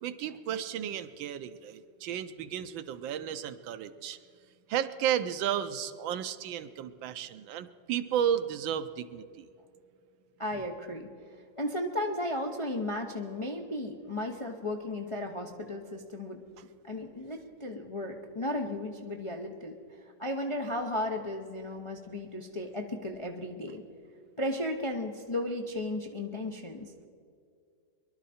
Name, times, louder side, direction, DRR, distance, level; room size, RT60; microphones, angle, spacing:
voice 1, 0.0-4.2 4.7-9.5, right 9 dB, 90° right, 11 dB, 1.5 m, -33 dB
voice 2, 10.4-11.1 11.6-16.4 16.8-19.7 20.0-23.8 24.4-26.9, left 1 dB, 40° left, 2 dB, 0.4 m, -35 dB
22.5 x 12.0 x 4.3 m, 2.3 s
omnidirectional pair, 2.0 m